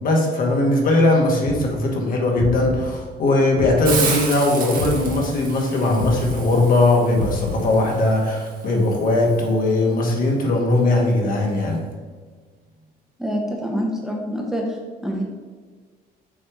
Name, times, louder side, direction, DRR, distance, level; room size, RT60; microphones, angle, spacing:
voice 1, 0.0-11.8, left 2 dB, 55° left, -1 dB, 1.6 m, -19 dB
sound 1, 1.4-4.4 4.7-8.1, left 2 dB, 85° left, 0.8 m, -30 dB
Hiss, 3.8-9.5, right 4 dB, 55° right, 1.5 m, -31 dB
voice 2, 13.2-14.8 15.0-15.2, equal, 5° right, -1 dB, 0.9 m, -26 dB
6.3 x 3.5 x 4.8 m, 1.5 s
cardioid pair, 110°, 17 cm